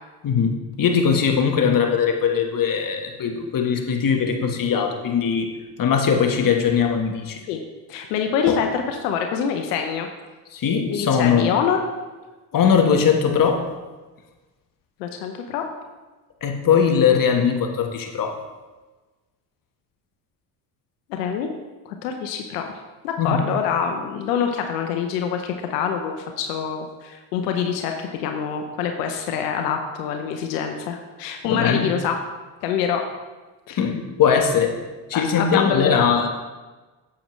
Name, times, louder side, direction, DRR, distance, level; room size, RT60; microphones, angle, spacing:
voice 1, 0.2-5.5 5.8-7.4 8.5-8.6 10.5-11.5 12.5-13.6 16.4-18.3 23.2-23.5 31.4-31.8 33.8-34.8 35.1-36.3, left 7 dB, 45° left, 3 dB, 1.4 m, -20 dB
voice 2, 7.9-10.1 10.9-11.8 15.0-15.6 21.1-21.5 21.9-22.6 23.0-32.2 32.6-33.1 33.7-33.8 35.1-36.0, left 7 dB, 90° left, 4 dB, 0.8 m, -25 dB
8.5 x 7.6 x 3.2 m, 1.2 s
supercardioid pair, 70°, 47 cm